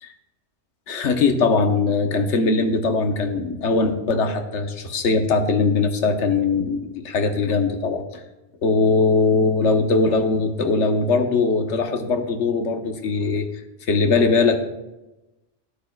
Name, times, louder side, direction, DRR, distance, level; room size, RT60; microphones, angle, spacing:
voice 1, 0.9-8.2 8.6-13.5 13.9-14.6, left 4 dB, 80° left, 6 dB, 1.2 m, -20 dB
13.0 x 11.0 x 2.2 m, 1.0 s
omnidirectional pair, 1.2 m